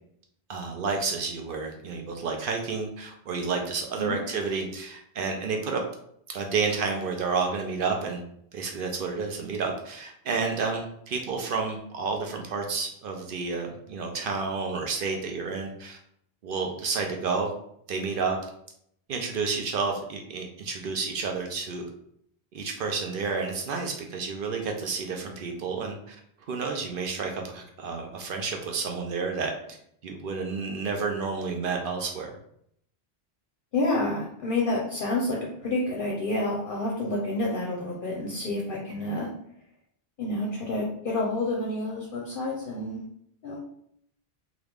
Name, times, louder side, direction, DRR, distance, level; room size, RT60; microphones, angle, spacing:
voice 1, 0.5-5.8 6.3-8.2 8.5-16.0 16.4-17.5 17.9-18.4 19.1-21.8 22.5-26.2 26.5-29.8 30.0-32.3, right 4 dB, 60° right, 2 dB, 0.7 m, -30 dB
voice 2, 33.7-39.3 40.2-43.0 43.4-43.6, left 2 dB, 60° left, -2 dB, 0.7 m, -29 dB
2.9 x 2.4 x 3.4 m, 0.70 s
omnidirectional pair, 1.1 m